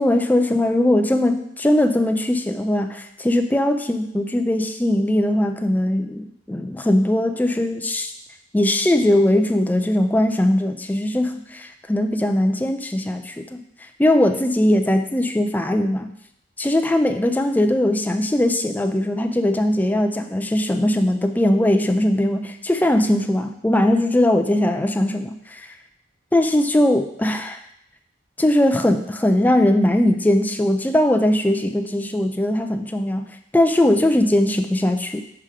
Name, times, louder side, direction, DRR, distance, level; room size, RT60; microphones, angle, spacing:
voice 1, 0.0-8.1 8.5-13.6 14.0-16.1 16.6-25.8 26.3-27.6 28.4-33.3 33.5-35.2, left 1 dB, 10° left, 6 dB, 0.4 m, -20 dB
4.9 x 4.8 x 5.7 m, 0.77 s
head